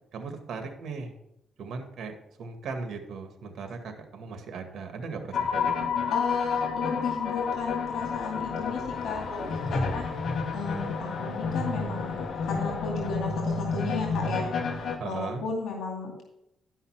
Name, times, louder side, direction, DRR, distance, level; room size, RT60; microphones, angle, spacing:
voice 1, 0.1-1.1 1.6-5.9 15.0-15.4, right 4 dB, 65° right, 5 dB, 1.9 m, -38 dB
sound 1, 5.3-15.0, left 5 dB, 55° left, 1.5 m, -30 dB
voice 2, 6.1-10.2 10.5-16.2, left 4 dB, 70° left, 1 dB, 2.4 m, -34 dB
12.0 x 5.7 x 5.9 m, 0.83 s
cardioid pair, 105°, 0 cm